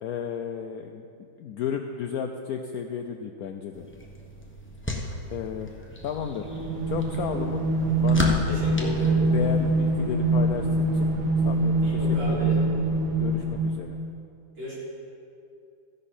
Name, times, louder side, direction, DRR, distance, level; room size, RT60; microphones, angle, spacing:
voice 1, 0.0-1.1 1.4-3.8 5.3-5.8 6.0-6.5 6.9-7.6 8.0-8.4 8.7-11.2 11.4-12.7 13.2-14.0, left 7 dB, 85° left, 5 dB, 0.8 m, -33 dB
sound 1, 3.7-9.9, left 1 dB, 15° left, 0.5 m, -35 dB
sound 2, 6.3-14.0, right 2 dB, 55° right, 1.9 m, -24 dB
voice 2, 8.5-9.2 11.8-12.6 14.6-14.8, equal, 75° right, -8 dB, 4.7 m, -35 dB
14.5 x 10.5 x 4.3 m, 2.5 s
omnidirectional pair, 2.2 m